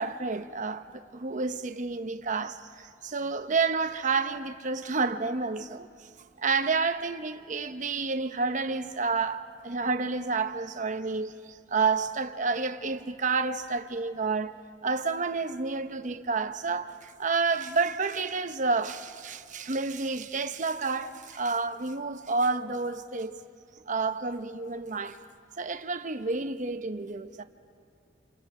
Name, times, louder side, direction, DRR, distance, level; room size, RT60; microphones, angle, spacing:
voice 1, 0.0-5.9 6.4-14.6 14.8-23.4 23.9-25.2 25.6-27.4, right 4 dB, 45° right, 0.9 m, -30 dB
28.5 x 28.5 x 4.9 m
head